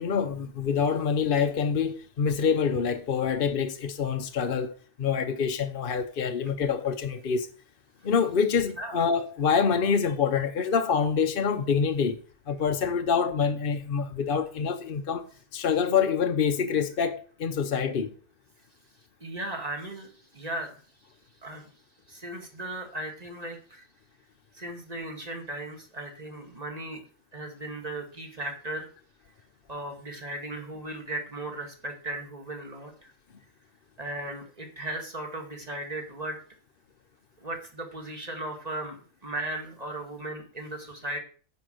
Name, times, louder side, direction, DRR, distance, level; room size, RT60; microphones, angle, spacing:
voice 1, 0.0-4.7 5.0-7.5 8.0-12.2 12.5-15.3 15.5-18.1, left 6 dB, 50° left, 0.8 m, -26 dB
voice 2, 19.2-20.8 21.4-21.7 22.1-23.9 24.5-27.0 27.3-28.9 29.7-33.1 34.0-36.4 37.4-41.2, right 1 dB, 30° right, 2.2 m, -36 dB
10.0 x 5.0 x 7.7 m
omnidirectional pair, 1.4 m